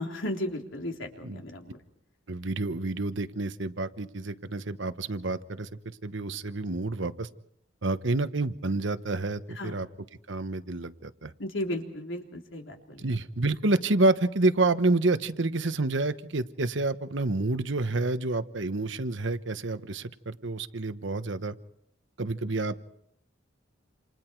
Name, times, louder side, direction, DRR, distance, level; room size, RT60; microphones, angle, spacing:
voice 1, 0.0-1.8 9.6-9.7 11.4-13.0, left 1 dB, 85° left, 2 dB, 3.6 m, -35 dB
voice 2, 2.3-5.7 6.0-7.3 7.8-9.9 10.3-11.3 13.0-21.5 22.2-22.9, right 2 dB, 70° right, 11 dB, 1.1 m, -28 dB
28.5 x 27.5 x 4.7 m, 0.73 s
head